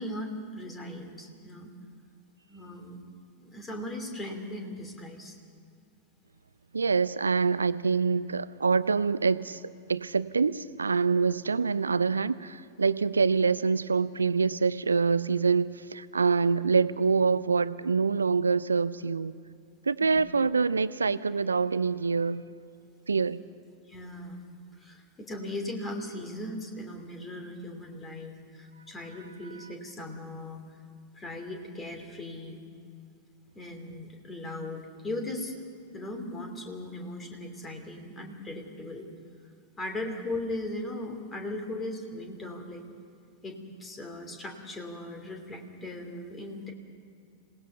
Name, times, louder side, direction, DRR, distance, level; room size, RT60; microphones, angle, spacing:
voice 1, 0.0-1.7 2.5-3.0 3.4-5.4 20.0-20.2 23.9-24.5 24.7-30.6 31.1-32.6 33.5-39.1 39.8-42.8 43.4-46.7, left 1 dB, 15° left, 4 dB, 3.0 m, -38 dB
voice 2, 6.7-9.6 9.9-19.3 19.9-22.4 23.1-23.4, right 5 dB, 75° right, 17 dB, 0.6 m, -25 dB
27.0 x 18.0 x 5.7 m, 2.4 s
figure-of-eight pair, 90°, 0 cm